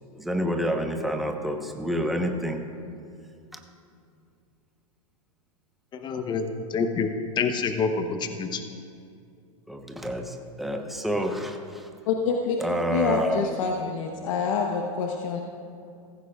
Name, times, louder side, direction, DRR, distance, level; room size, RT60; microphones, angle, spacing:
voice 1, 0.1-2.7 9.7-11.9 12.6-13.5, equal, ahead, 3 dB, 1.0 m, -28 dB
voice 2, 5.9-6.4 6.7-8.7, left 5 dB, 25° left, 7 dB, 0.9 m, -27 dB
voice 3, 12.1-12.6 12.9-15.4, left 5 dB, 65° left, 1 dB, 1.1 m, -26 dB
16.5 x 14.5 x 2.4 m, 2.4 s
hypercardioid pair, 110°, 18 cm